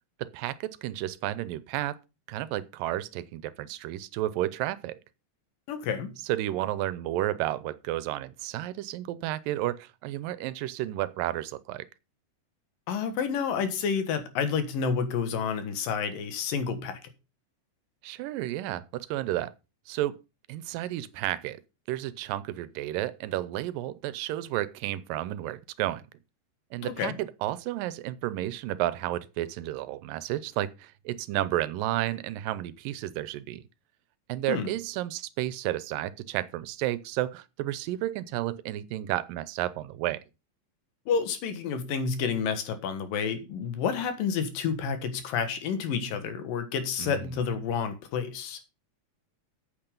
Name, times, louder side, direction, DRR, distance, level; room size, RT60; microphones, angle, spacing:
voice 1, 0.2-2.0 2.3-5.0 6.2-11.9 18.0-19.5 19.9-20.2 20.5-21.6 21.9-26.0 26.7-33.6 34.3-40.2 47.0-47.5, right 14 dB, 90° right, 2.4 m, -32 dB
voice 2, 5.7-6.1 12.9-17.0 26.8-27.2 34.5-34.7 41.1-48.6, left 6 dB, 80° left, 3.2 m, -29 dB
8.9 x 8.3 x 5.3 m
omnidirectional pair, 3.9 m